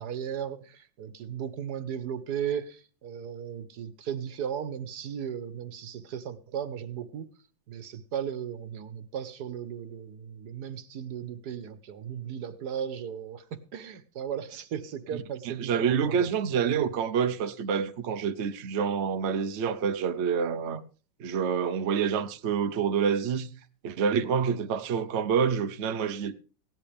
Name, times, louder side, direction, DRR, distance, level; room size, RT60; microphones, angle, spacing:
voice 1, 0.0-7.3 7.7-16.3, right 8 dB, 60° right, 1.3 m, -36 dB
voice 2, 15.4-20.8 21.2-23.5 23.8-26.3, right 7 dB, 75° right, 0.6 m, -27 dB
17.0 x 11.0 x 3.4 m
omnidirectional pair, 2.3 m